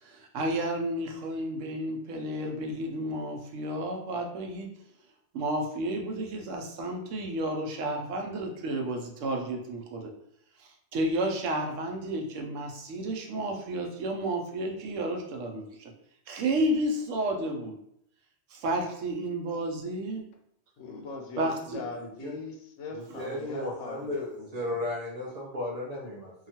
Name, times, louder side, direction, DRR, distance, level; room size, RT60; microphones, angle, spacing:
voice 1, 0.0-4.7 5.3-10.1 10.6-15.9 16.3-17.8 18.5-20.2 21.4-21.8 23.1-23.2, right 1 dB, 85° right, 2 dB, 0.9 m, -31 dB
voice 2, 20.8-24.8, left 3 dB, 85° left, 2 dB, 1.0 m, -41 dB
voice 3, 22.0-22.3 22.9-26.3, left 1 dB, 45° right, -2 dB, 0.5 m, -35 dB
2.8 x 2.3 x 2.7 m, 0.73 s
omnidirectional pair, 1.2 m